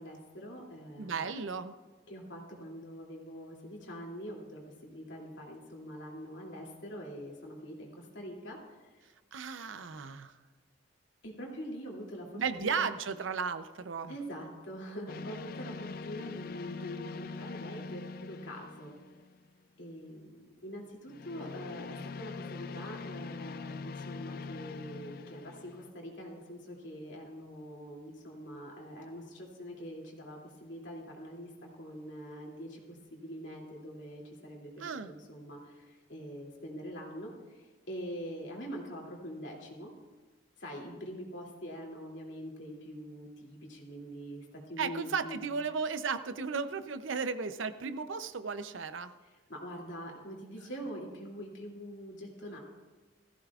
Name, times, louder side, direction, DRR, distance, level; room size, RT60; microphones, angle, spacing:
voice 1, 0.0-1.4 2.1-7.9 8.1-8.6 11.2-12.9 14.1-18.9 19.8-20.9 21.2-21.9 22.2-31.5 31.8-32.8 33.1-34.7 35.1-35.6 36.1-37.3 37.9-39.9 40.6-45.4 49.5-52.6, equal, 65° left, -1 dB, 2.7 m, -44 dB
voice 2, 1.0-1.7 9.3-10.3 12.3-14.1 34.8-35.1 44.8-49.1, right 5 dB, 75° right, 11 dB, 0.6 m, -35 dB
sound 1, 15.1-19.5 21.1-25.9, left 4 dB, 50° left, 0.3 m, -43 dB
17.0 x 14.5 x 2.4 m, 1.3 s
head